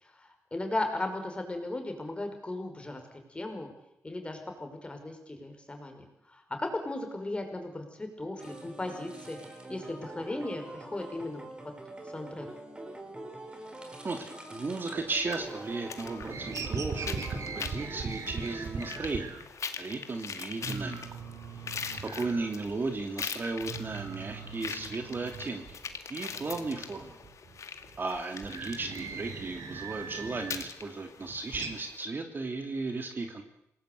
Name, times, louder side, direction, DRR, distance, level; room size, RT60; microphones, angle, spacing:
voice 1, 0.0-3.0 3.3-3.7 4.0-9.4 9.7-11.5 12.1-12.5, left 2 dB, 20° left, 5 dB, 5.6 m, -36 dB
sound 1, 8.4-19.2, right 1 dB, 15° right, 4.4 m, -45 dB
voice 2, 14.0-19.3 19.8-21.0 22.0-25.6 26.1-27.2 28.0-33.4, right 3 dB, 35° right, 5 dB, 2.9 m, -35 dB
sound 2, 15.0-15.7 16.0-19.5 19.9-20.0 20.3-20.4 20.6-23.1 23.3-26.0 26.3-30.7 31.1-31.8, right 5 dB, 65° right, 3.4 m, -40 dB
sound 3, 15.3-32.0, left 6 dB, 60° left, 2.3 m, -43 dB
28.0 x 19.5 x 8.4 m, 0.80 s
wide cardioid pair, 135°, 6 cm